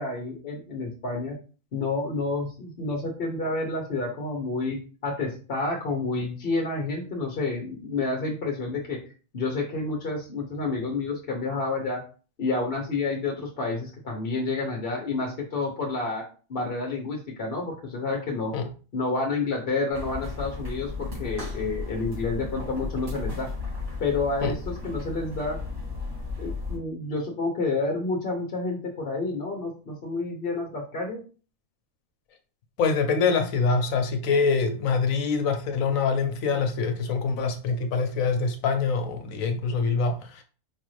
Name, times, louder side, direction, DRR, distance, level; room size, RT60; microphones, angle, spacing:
voice 1, 0.0-1.4 1.7-4.8 5.0-9.0 9.3-12.0 12.4-16.2 16.5-18.5 18.9-23.5 24.0-25.6 26.4-31.2, left 3 dB, 50° left, 0.9 m, -29 dB
sound 1, 19.9-26.8, left 3 dB, 80° right, 2.6 m, -34 dB
voice 2, 32.8-40.4, left 5 dB, 80° left, 1.1 m, -25 dB
4.8 x 2.5 x 3.1 m
omnidirectional pair, 1.4 m